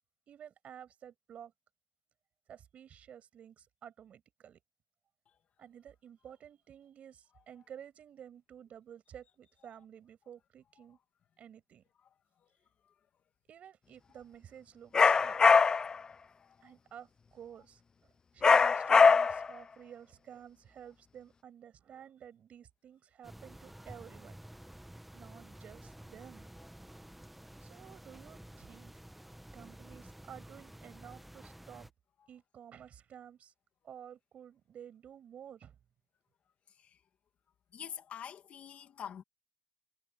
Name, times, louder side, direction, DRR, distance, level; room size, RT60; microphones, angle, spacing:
voice 1, 0.3-1.5 2.5-4.6 5.6-11.0 11.4-11.8 13.5-15.5 16.6-24.4 25.1-26.5 27.6-28.9 29.5-31.9 32.3-33.5 33.8-35.8, right 9 dB, 55° right, 5.9 m, -52 dB
sound 1, 14.9-16.0 18.4-19.5, left 5 dB, 30° left, 0.3 m, -22 dB
voice 2, 16.4-16.7 36.8-37.0 37.7-39.2, left 8 dB, 55° left, 2.0 m, -45 dB
sound 2, 23.2-31.9, right 1 dB, 5° right, 1.0 m, -51 dB
cardioid pair, 145°, 3 cm